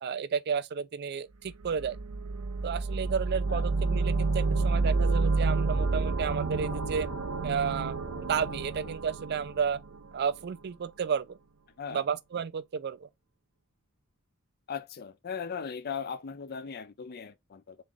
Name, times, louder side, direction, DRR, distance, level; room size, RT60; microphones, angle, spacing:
voice 1, 0.0-2.0 2.6-7.1 7.4-8.0 8.3-9.8 10.1-11.4 11.9-13.1, right 6 dB, 50° right, 0.4 m, -32 dB
sound 1, 1.6-10.5, right 3 dB, 90° right, 0.6 m, -29 dB
sound 2, 3.3-8.9, left 3 dB, 70° left, 0.8 m, -47 dB
voice 2, 14.7-17.8, left 6 dB, 50° left, 0.5 m, -38 dB
3.7 x 3.2 x 3.5 m
head